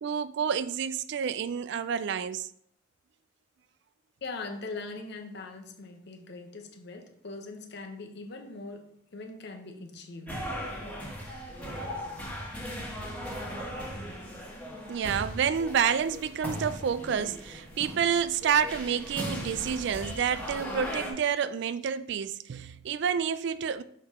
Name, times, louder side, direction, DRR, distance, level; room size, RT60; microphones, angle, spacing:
voice 1, 0.0-2.5 14.9-23.8, right 7 dB, 60° right, 0.3 m, -29 dB
voice 2, 4.2-10.5, left 3 dB, 55° left, 0.8 m, -41 dB
sound 1, 10.3-21.1, equal, 10° left, 1.3 m, -38 dB
6.5 x 4.5 x 3.6 m
head